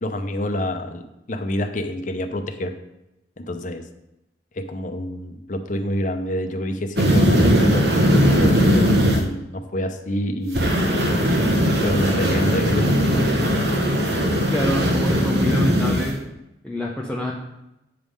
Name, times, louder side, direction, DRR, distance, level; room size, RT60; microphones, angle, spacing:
voice 1, 0.0-2.7 3.4-3.9 4.5-10.8 11.8-13.3, left 1 dB, 45° left, 6 dB, 0.7 m, -27 dB
sound 1, 7.0-9.2 10.5-16.1, equal, 70° right, 1.2 m, -19 dB
voice 2, 14.5-16.1 16.6-17.3, left 1 dB, 5° left, -3 dB, 0.7 m, -26 dB
8.4 x 3.6 x 6.3 m, 0.91 s
head